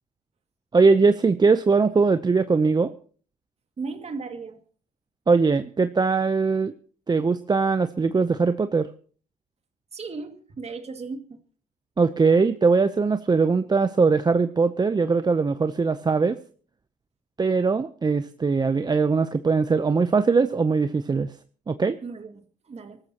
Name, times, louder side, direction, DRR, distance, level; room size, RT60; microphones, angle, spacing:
voice 1, 0.7-2.9 5.3-6.7 7.1-8.9 12.0-16.4 17.4-21.3 21.7-22.0, right 4 dB, 25° right, 10 dB, 0.7 m, -21 dB
voice 2, 3.8-4.6 9.9-11.4 22.0-23.0, right 4 dB, 45° right, 6 dB, 2.3 m, -36 dB
24.5 x 14.0 x 2.9 m, 0.43 s
cardioid pair, 85°, 15 cm